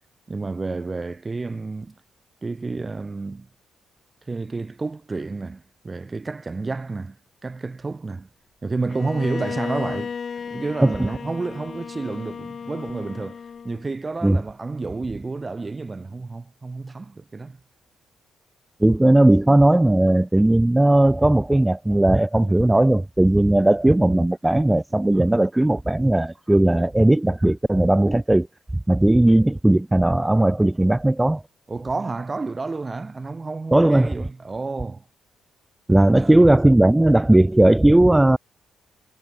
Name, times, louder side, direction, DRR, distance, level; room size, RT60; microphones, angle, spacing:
voice 1, 0.3-1.9 2.4-3.5 4.3-7.2 7.4-8.3 8.6-10.2 10.5-13.4 13.6-17.6 31.7-35.0 36.1-36.5, right 3 dB, 25° right, 1.2 m, -30 dB
Bowed string instrument, 8.9-13.9, left 6 dB, 45° left, 2.6 m, -34 dB
voice 2, 18.8-28.5 28.9-31.4 33.7-34.3 35.9-38.4, right 1 dB, 10° right, 0.7 m, -17 dB
cardioid pair, 90°, 0 cm